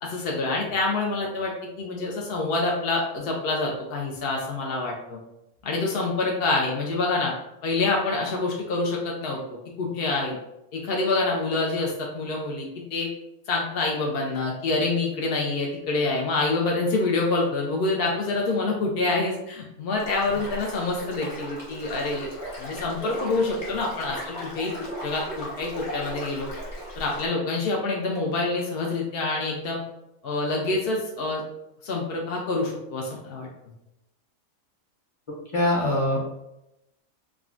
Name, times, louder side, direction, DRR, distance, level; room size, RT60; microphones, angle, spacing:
voice 1, 0.0-5.2 5.6-7.3 7.6-9.4 9.8-10.4 10.7-13.1 13.5-22.3 22.6-24.2 24.5-24.7 25.0-26.5 26.9-29.8 30.2-31.4 31.8-33.5, left 3 dB, 80° left, -1 dB, 0.5 m, -26 dB
sound 1, 19.9-27.3, equal, 50° left, 1.4 m, -37 dB
voice 2, 35.5-36.3, left 1 dB, 30° left, -6 dB, 0.6 m, -23 dB
3.6 x 2.1 x 2.4 m, 0.88 s
omnidirectional pair, 1.6 m